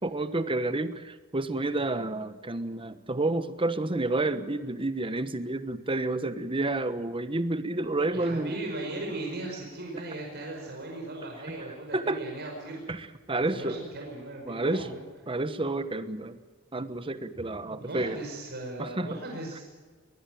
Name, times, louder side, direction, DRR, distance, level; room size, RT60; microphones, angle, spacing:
voice 1, 0.0-8.6 11.9-12.2 12.9-13.0 13.3-13.8 14.4-14.8 15.3-16.4 16.7-18.2 18.8-19.1, right 2 dB, 25° right, 12 dB, 1.1 m, -30 dB
voice 2, 8.1-12.9 13.5-15.0 17.6-19.6, right 2 dB, 55° right, 0 dB, 5.2 m, -38 dB
21.5 x 20.5 x 9.2 m, 1.4 s
head